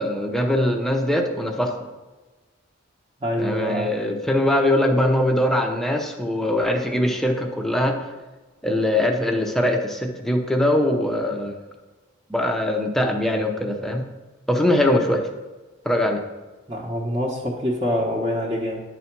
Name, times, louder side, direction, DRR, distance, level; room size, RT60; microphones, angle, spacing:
voice 1, 0.0-1.8 3.4-8.0 8.6-11.5 12.3-14.0 14.5-15.2 15.8-16.2, left 1 dB, ahead, 2 dB, 0.8 m, -22 dB
voice 2, 3.2-3.9 16.7-18.8, equal, 25° right, -6 dB, 1.0 m, -25 dB
9.7 x 4.2 x 5.9 m, 1.2 s
head